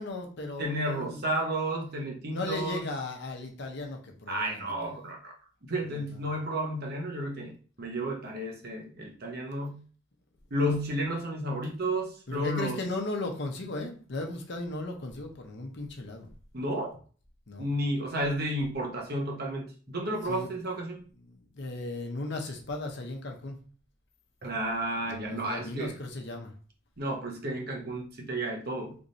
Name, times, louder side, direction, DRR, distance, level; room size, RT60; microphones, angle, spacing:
voice 1, 0.0-1.2 2.3-4.7 5.9-6.2 12.3-16.3 17.5-17.7 20.2-20.5 21.2-23.6 25.0-26.5, left 2 dB, 60° left, 3 dB, 0.8 m, -36 dB
voice 2, 0.6-2.9 4.3-5.3 5.7-9.8 10.5-12.8 16.5-17.0 17.6-21.0 24.4-25.9 27.0-29.0, right 1 dB, 50° right, 0 dB, 0.9 m, -32 dB
3.5 x 3.1 x 2.6 m, 0.40 s
head